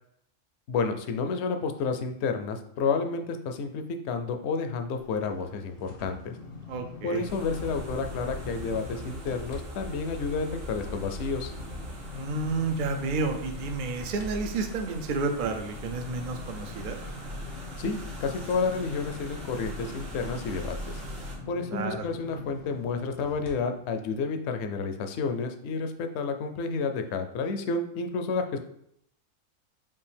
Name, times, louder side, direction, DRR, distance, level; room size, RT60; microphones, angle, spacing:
voice 1, 0.7-6.4 7.0-11.5 17.8-21.0 21.5-28.6, left 4 dB, 65° left, 6 dB, 0.8 m, -30 dB
sound 1, 5.0-9.6 10.0-23.5 24.0-24.1, left 4 dB, 85° left, 1.2 m, -45 dB
voice 2, 6.7-7.2 12.1-17.0 21.7-22.0, right 3 dB, 60° right, 5 dB, 0.5 m, -31 dB
sound 2, 7.2-21.4, equal, 85° right, 1.4 m, -41 dB
sound 3, 7.5-11.9, right 1 dB, 40° right, 0.9 m, -43 dB
5.4 x 2.4 x 3.4 m, 0.73 s
omnidirectional pair, 1.3 m